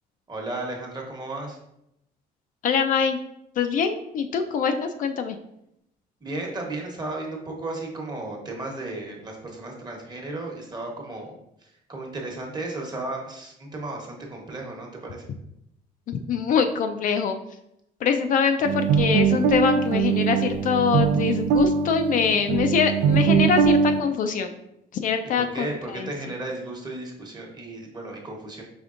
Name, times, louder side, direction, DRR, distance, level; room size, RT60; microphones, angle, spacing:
voice 1, 0.3-1.6 6.2-11.3 11.6-15.2 25.4-28.6, right 2 dB, 25° right, 0 dB, 1.1 m, -34 dB
voice 2, 2.6-3.2 3.6-5.4 16.1-17.4 18.0-24.5 24.9-26.1, left 6 dB, 50° left, 7 dB, 0.4 m, -24 dB
sound 1, 18.6-24.0, right 6 dB, 90° right, 0.4 m, -22 dB
5.1 x 3.4 x 2.5 m, 0.81 s
cardioid pair, 110°, 17 cm